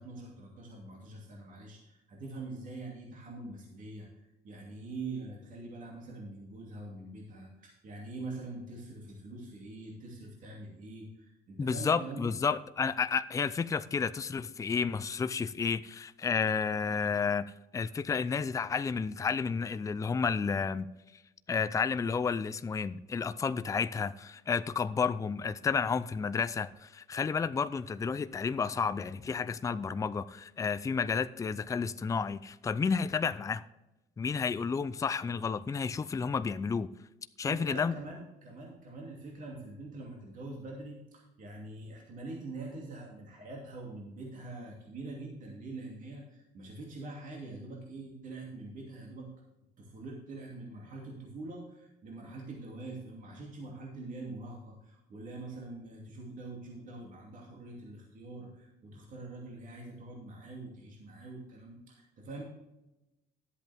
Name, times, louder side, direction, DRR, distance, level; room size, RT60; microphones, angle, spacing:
voice 1, 0.0-4.1 4.4-12.4 37.4-49.3 49.8-62.4, right 2 dB, 50° right, -1 dB, 2.6 m, -44 dB
voice 2, 11.6-20.9 21.5-33.6 34.2-36.9 37.4-37.9, left 5 dB, 20° left, 13 dB, 0.4 m, -31 dB
11.5 x 8.0 x 3.5 m, 0.97 s
cardioid pair, 110°, 17 cm